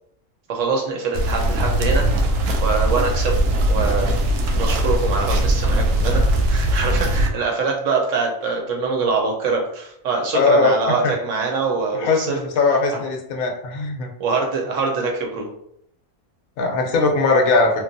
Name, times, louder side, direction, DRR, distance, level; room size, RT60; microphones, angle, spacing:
voice 1, 0.5-2.1 2.6-3.4 3.7-4.2 4.6-12.4 12.9-13.0 14.2-15.5, right 4 dB, 65° right, 0 dB, 0.8 m, -24 dB
sound 1, 1.1-7.3, right 1 dB, 90° right, 1.1 m, -20 dB
voice 2, 10.3-10.7 12.0-14.1 16.6-17.7, left 3 dB, 75° left, 2 dB, 1.0 m, -19 dB
3.0 x 2.3 x 2.5 m, 0.73 s
omnidirectional pair, 1.6 m